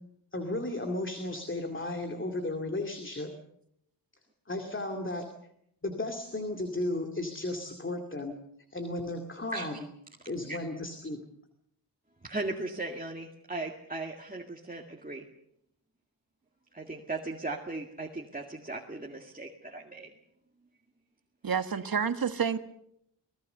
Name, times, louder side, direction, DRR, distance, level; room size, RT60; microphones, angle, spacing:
voice 1, 0.3-3.3 4.5-5.2 5.8-8.4 8.7-9.8 10.3-11.2, left 2 dB, 30° left, 2.4 m, -34 dB
voice 2, 12.2-15.2 16.7-20.1, right 2 dB, 20° right, 2.1 m, -37 dB
voice 3, 21.4-22.6, right 7 dB, 60° right, 1.5 m, -29 dB
26.5 x 18.5 x 6.8 m
wide cardioid pair, 100°, 40 cm